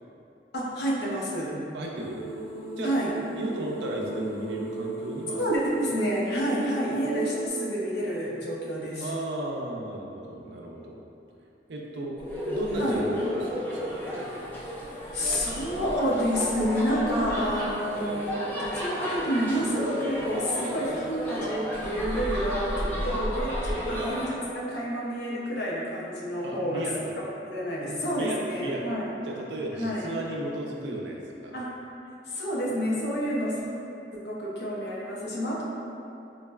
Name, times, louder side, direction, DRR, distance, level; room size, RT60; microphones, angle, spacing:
voice 1, 0.5-1.6 2.8-3.1 5.4-9.1 12.8-13.1 14.5-26.9 27.5-29.1 29.7-30.1 31.5-31.7 32.3-33.6 34.1-35.6, equal, 70° left, -5 dB, 0.6 m, -29 dB
voice 2, 1.7-2.2 2.8-2.9 3.4-5.4 9.0-11.0 11.7-12.1 12.5-14.0 22.9-23.1 26.4-27.1 28.0-28.9 29.2-31.6, right 1 dB, 75° right, -1 dB, 0.4 m, -34 dB
sound 1, 2.0-7.5, right 3 dB, 40° left, 1.1 m, -36 dB
sound 2, 12.2-24.3, equal, 10° left, 0.4 m, -32 dB
3.8 x 2.0 x 2.2 m, 2.7 s
head